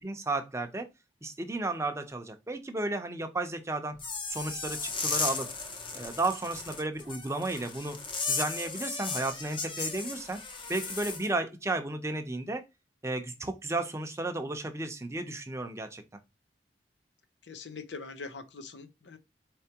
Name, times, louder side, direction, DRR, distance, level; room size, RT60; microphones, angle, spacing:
voice 1, 0.0-0.9 1.2-4.0 4.3-5.5 5.9-8.0 8.3-10.4 10.7-12.6 13.0-16.0, right 2 dB, 15° right, 0.7 m, -33 dB
sound 1, 4.0-11.3, left 4 dB, 30° left, 0.7 m, -35 dB
voice 2, 17.4-19.2, left 4 dB, 80° left, 0.8 m, -43 dB
4.5 x 3.5 x 2.8 m
head